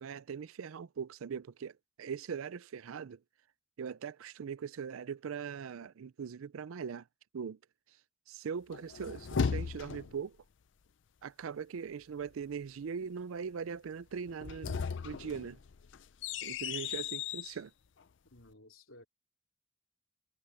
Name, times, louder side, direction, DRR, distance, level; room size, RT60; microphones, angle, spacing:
voice 1, 0.0-3.2 3.8-7.1 7.3-7.6 7.9-8.0 8.3-10.4 11.2-15.6 16.4-17.7, right 6 dB, 85° right, 0.4 m, -41 dB
sound 1, 8.7-10.2 14.3-17.5, left 6 dB, 60° left, 0.5 m, -36 dB
voice 2, 18.3-19.0, left 1 dB, 80° left, 3.5 m, -56 dB
head